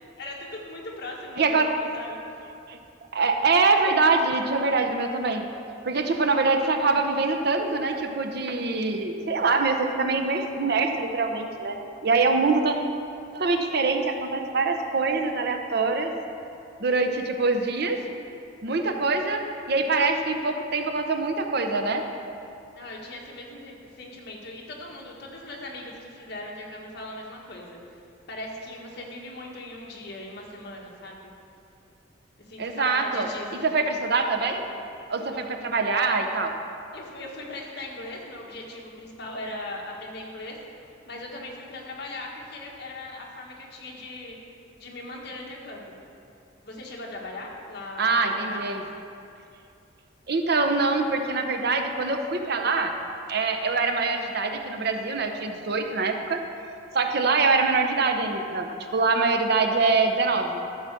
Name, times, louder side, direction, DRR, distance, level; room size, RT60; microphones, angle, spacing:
voice 1, 0.2-2.2 22.7-27.8 28.3-31.3 32.5-33.7 36.9-40.6 41.0-44.4 44.8-46.0 46.6-48.7, left 2 dB, 60° left, -1 dB, 1.6 m, -39 dB
voice 2, 1.4-1.7 2.7-2.8 3.1-5.4 5.8-12.8 13.3-16.1 16.8-18.0 18.6-19.4 19.7-22.0 32.6-33.3 33.6-34.6 35.1-36.5 48.0-48.8 50.3-52.9 53.3-56.4 56.9-60.6, right 3 dB, 60° right, 5 dB, 0.8 m, -24 dB
13.0 x 4.9 x 6.8 m, 2.6 s
head